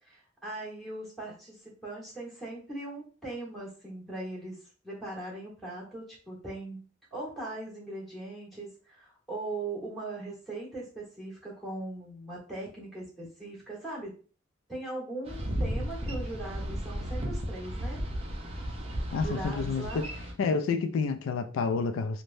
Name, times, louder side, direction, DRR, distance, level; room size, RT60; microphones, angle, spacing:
voice 1, 0.0-4.6 4.8-14.1 14.7-18.0 19.2-20.1, right 2 dB, ahead, 1.3 m, -40 dB
Boat Water vehicle, 15.3-20.3, equal, 30° right, 0.5 m, -34 dB
voice 2, 19.1-20.1 20.4-22.2, left 4 dB, 90° left, 0.3 m, -29 dB
3.2 x 2.1 x 2.5 m
head